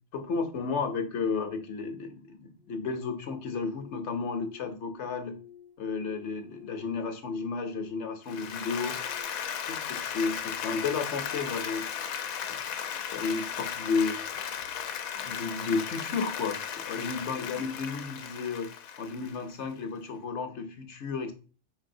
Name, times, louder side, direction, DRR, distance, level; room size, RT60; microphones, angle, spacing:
voice 1, 0.1-5.3 5.8-9.0 9.7-11.9 13.1-14.2 15.2-18.7 19.0-21.3, left 4 dB, 65° left, 7 dB, 0.9 m, -32 dB
sound 1, 2.6-9.2, left 11 dB, 70° right, 1.0 m, -52 dB
Applause, 8.3-19.6, left 8 dB, 85° left, 1.0 m, -36 dB
4.9 x 4.0 x 2.6 m, 0.36 s
omnidirectional pair, 1.4 m